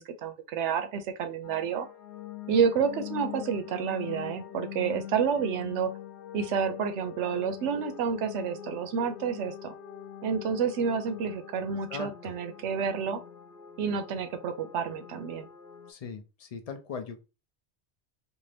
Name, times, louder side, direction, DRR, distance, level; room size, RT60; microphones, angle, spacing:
voice 1, 0.0-1.9 2.5-5.9 6.3-9.7 10.2-13.2 13.8-15.5, right 6 dB, 90° right, 0.9 m, -29 dB
sound 1, 1.4-15.9, left 10 dB, 75° left, 0.9 m, -44 dB
voice 2, 11.9-12.3 15.9-17.2, left 5 dB, 60° left, 0.4 m, -39 dB
2.6 x 2.5 x 3.2 m
omnidirectional pair, 1.2 m